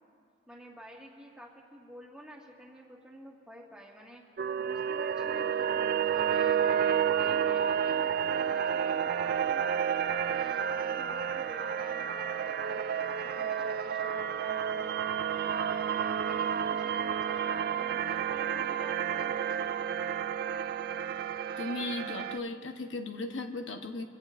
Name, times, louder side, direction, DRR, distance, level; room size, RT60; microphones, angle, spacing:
voice 1, 0.5-4.2 4.6-9.6 10.2-14.9 15.4-19.9, equal, 5° right, -3 dB, 1.8 m, -50 dB
sound 1, 4.4-22.4, right 8 dB, 55° right, 0.4 m, -30 dB
voice 2, 21.6-24.0, left 2 dB, 90° left, 5 dB, 1.0 m, -36 dB
25.0 x 16.0 x 2.6 m, 2.4 s
head